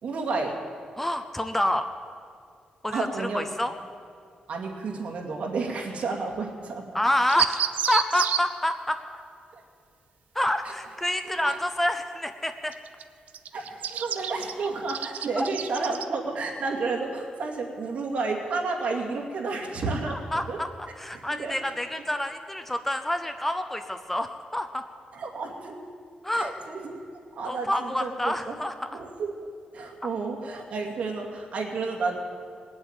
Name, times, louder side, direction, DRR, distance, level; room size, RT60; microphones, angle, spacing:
voice 1, 0.0-0.6 2.9-3.5 4.5-6.9 9.5-9.6 11.3-11.5 13.5-20.2 20.5-20.6 21.2-21.5 25.1-25.8 26.3-27.0 27.4-28.6 28.9-29.3 29.7-32.2, right 3 dB, 55° right, 0 dB, 2.4 m, -31 dB
voice 2, 1.0-1.9 2.8-3.7 6.9-9.0 10.3-12.7 15.4-15.5 20.1-24.8 26.2-26.5 27.4-29.0, left 1 dB, 10° left, 8 dB, 0.6 m, -28 dB
sound 1, 7.3-8.4 12.7-13.0 13.3-16.0, right 9 dB, 75° right, 0.7 m, -29 dB
20.0 x 8.0 x 9.0 m, 2.2 s
wide cardioid pair, 165°, 3 cm